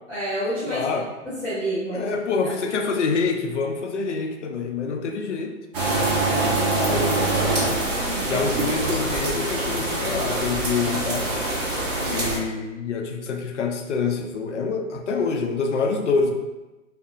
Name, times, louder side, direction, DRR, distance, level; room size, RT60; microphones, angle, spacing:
voice 1, 0.1-0.9 1.2-2.1 2.4-2.5 7.8-8.4, right 1 dB, 5° left, -13 dB, 1.2 m, -29 dB
voice 2, 0.7-1.1 1.9-5.6 5.9-7.8 8.3-11.4 12.1-16.3, left 4 dB, 60° left, 4 dB, 0.7 m, -26 dB
sound 1, 5.7-12.4, right 2 dB, 30° right, 1.0 m, -24 dB
5.5 x 2.2 x 2.5 m, 1.1 s
figure-of-eight pair, 130°, 40 cm